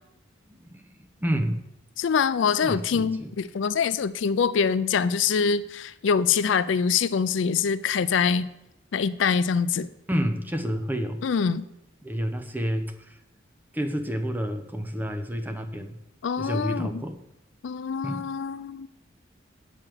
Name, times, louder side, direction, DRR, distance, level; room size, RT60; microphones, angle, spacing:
voice 1, 0.5-1.6 2.6-3.3 10.1-11.2 12.0-13.2 13.7-16.0 16.4-17.2 18.0-18.3, equal, 10° right, 6 dB, 0.7 m, -29 dB
voice 2, 2.0-8.5 8.9-9.9 11.2-11.7 16.2-17.0 17.6-18.9, left 6 dB, 75° left, 15 dB, 0.4 m, -24 dB
7.4 x 6.9 x 7.6 m, 0.88 s
head